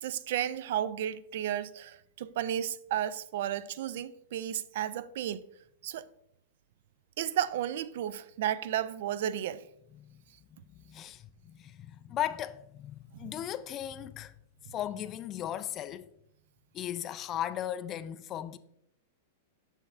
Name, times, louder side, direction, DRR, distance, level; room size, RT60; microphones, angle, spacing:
voice 1, 0.0-5.5 5.8-6.1 7.2-9.6 13.2-13.3, right 11 dB, 65° right, 0.3 m, -33 dB
voice 2, 10.5-14.3 14.7-16.1 16.7-18.6, left 11 dB, 30° left, 0.3 m, -37 dB
7.1 x 6.4 x 2.5 m
supercardioid pair, 145°, 0 cm